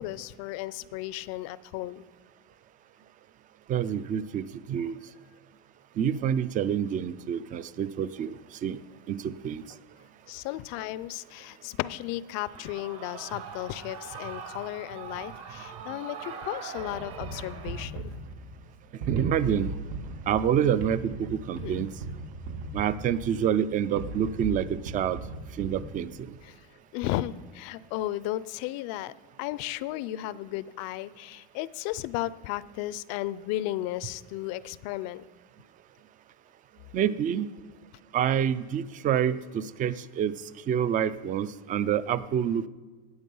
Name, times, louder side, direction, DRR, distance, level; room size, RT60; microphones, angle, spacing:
voice 1, 0.0-2.0 10.3-18.1 21.6-21.7 26.4-26.6 26.9-29.1 29.4-35.2, left 15 dB, 60° left, 18 dB, 0.5 m, -34 dB
voice 2, 3.7-5.0 6.0-8.8 9.1-9.6 19.1-19.7 20.3-21.9 22.7-25.2 25.6-26.4 36.9-37.5 38.1-40.3 40.7-42.7, right 9 dB, 30° right, 16 dB, 0.4 m, -27 dB
Shout / Cheering, 12.4-17.8, right 6 dB, 50° right, 1.8 m, -42 dB
sound 1, 16.8-26.3, right 2 dB, 85° right, 1.9 m, -38 dB
17.5 x 8.5 x 5.5 m, 1.4 s
cardioid pair, 145°, 29 cm